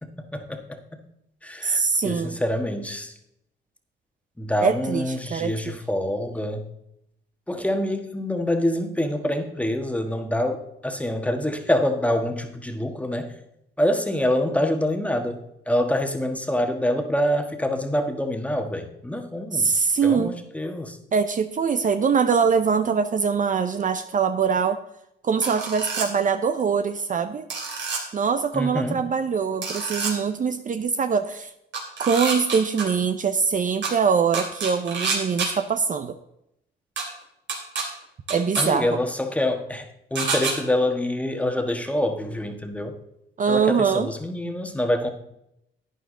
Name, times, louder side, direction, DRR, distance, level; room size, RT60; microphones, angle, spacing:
voice 1, 0.0-0.8 1.4-3.1 4.4-6.6 7.5-13.3 13.8-19.7 20.0-21.0 28.5-29.0 38.6-43.0 43.5-45.1, left 1 dB, 5° left, 5 dB, 1.4 m, -26 dB
voice 2, 1.6-2.4 4.6-5.7 19.5-20.3 21.1-24.8 25.2-27.4 28.1-31.5 32.0-36.1 38.3-39.0 43.4-44.1, right 6 dB, 40° right, 10 dB, 0.7 m, -23 dB
sound 1, 25.4-26.1 27.5-28.0 29.6-30.1 31.7-32.8 33.8-33.9 34.3-35.5 37.0-37.1 37.5-37.8 38.3-38.6 40.2-40.5, right 4 dB, 65° right, 3.1 m, -27 dB
11.5 x 9.3 x 3.8 m, 0.80 s
cardioid pair, 90°, 20 cm